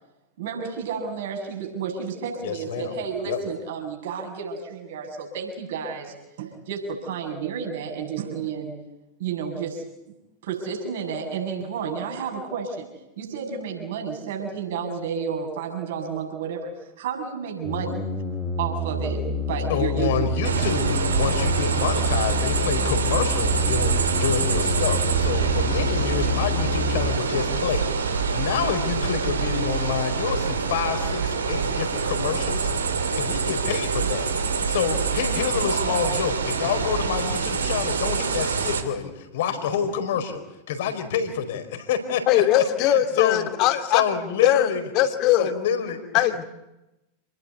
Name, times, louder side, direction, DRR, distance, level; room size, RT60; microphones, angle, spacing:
voice 1, 0.4-8.8 9.2-9.8 10.4-12.9 13.2-18.1 18.6-20.6, right 6 dB, 55° right, 2 dB, 7.1 m, -31 dB
voice 2, 2.4-2.9 3.2-3.4 19.7-34.3 34.7-40.4 40.7-41.6 41.9-43.5 43.8-44.8 45.4-46.2, left 7 dB, 55° left, 8 dB, 4.6 m, -28 dB
sound 1, 17.6-27.2, left 1 dB, 5° left, 4.1 m, -28 dB
sound 2, 20.4-38.8, right 5 dB, 70° right, 2.9 m, -25 dB
voice 3, 42.3-44.0 44.4-45.5 46.1-46.4, left 12 dB, 40° left, 7 dB, 2.6 m, -20 dB
29.0 x 20.0 x 8.4 m, 0.95 s
figure-of-eight pair, 90°, 0 cm